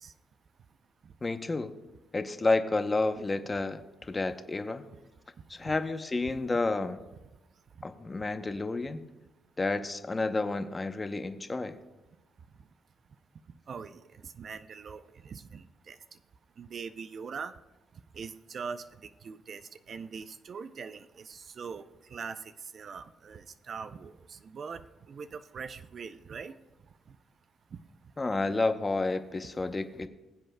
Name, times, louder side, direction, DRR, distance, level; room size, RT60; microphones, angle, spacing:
voice 1, 1.2-1.7 2.1-4.9 5.5-7.0 7.8-9.0 9.6-11.8 28.2-30.1, left 3 dB, 25° left, 9 dB, 0.7 m, -30 dB
voice 2, 13.7-16.0 16.6-17.5 18.1-19.6 19.9-21.8 22.1-24.8 25.1-26.5, right 5 dB, 50° right, 11 dB, 0.5 m, -42 dB
20.5 x 7.7 x 2.2 m, 1.0 s
cardioid pair, 90°, 0 cm